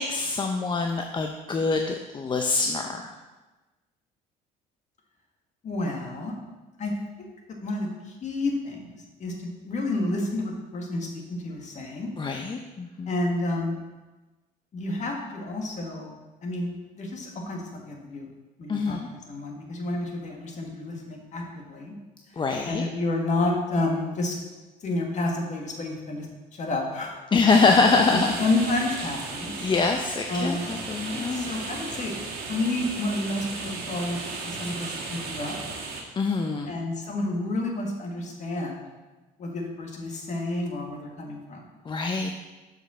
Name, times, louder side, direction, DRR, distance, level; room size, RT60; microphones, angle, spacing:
voice 1, 0.0-3.1 12.2-13.1 18.7-19.1 22.4-22.9 27.3-28.3 29.6-30.6 30.9-31.5 36.2-36.7 41.9-42.3, left 4 dB, 30° left, 4 dB, 0.6 m, -24 dB
voice 2, 5.6-6.3 6.8-6.9 7.2-7.3 7.6-12.1 13.1-13.8 14.7-16.1 16.4-18.3 18.6-21.9 22.3-24.4 24.8-26.3 26.5-27.2 27.7-27.8 28.1-29.7 30.3-30.7 31.3-32.1 32.5-35.5 36.7-38.9 39.4-41.7, left 2 dB, 45° left, 1 dB, 1.8 m, -30 dB
sound 1, 27.5-36.0, right 3 dB, 70° right, 1.6 m, -35 dB
6.6 x 5.3 x 6.2 m, 1.2 s
cardioid pair, 110°, 17 cm